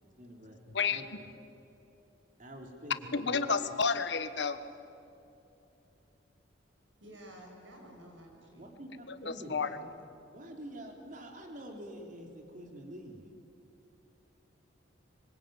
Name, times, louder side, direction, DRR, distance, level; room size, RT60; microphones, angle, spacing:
voice 1, 0.0-0.6 0.9-1.0 2.4-3.4 8.5-9.6 10.3-13.2, right 1 dB, 45° right, 2 dB, 3.7 m, -46 dB
voice 2, 0.7-1.0 3.1-4.6 9.1-9.8, left 5 dB, 65° left, 11 dB, 1.3 m, -31 dB
voice 3, 7.0-8.7 9.4-9.9, equal, 80° right, 1 dB, 7.5 m, -52 dB
25.0 x 24.5 x 9.1 m, 2.9 s
head